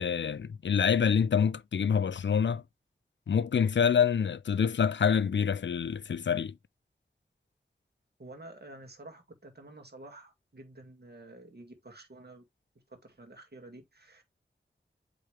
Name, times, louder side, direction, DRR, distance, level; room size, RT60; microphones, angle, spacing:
voice 1, 0.0-2.6 3.3-6.5, left 7 dB, 70° left, 0.4 m, -26 dB
voice 2, 8.2-12.4 12.9-14.2, right 2 dB, 55° right, 2.1 m, -50 dB
8.5 x 3.7 x 3.2 m
wide cardioid pair, 65°, 19 cm